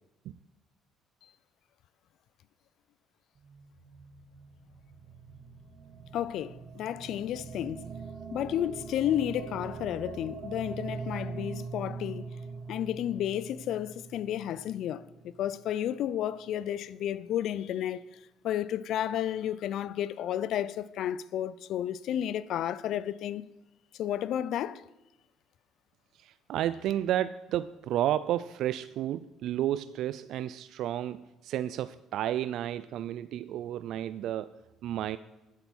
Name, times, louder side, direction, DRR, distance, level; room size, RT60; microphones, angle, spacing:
sound 1, 3.4-15.6, right 4 dB, 35° right, 1.6 m, -43 dB
voice 1, 6.1-7.9 8.3-12.3 12.7-15.0 15.4-18.0 18.4-23.4 24.0-24.8, left 11 dB, 65° left, 0.5 m, -32 dB
voice 2, 26.2-35.2, right 12 dB, 70° right, 0.4 m, -32 dB
11.5 x 8.2 x 6.2 m
supercardioid pair, 85°, 0 cm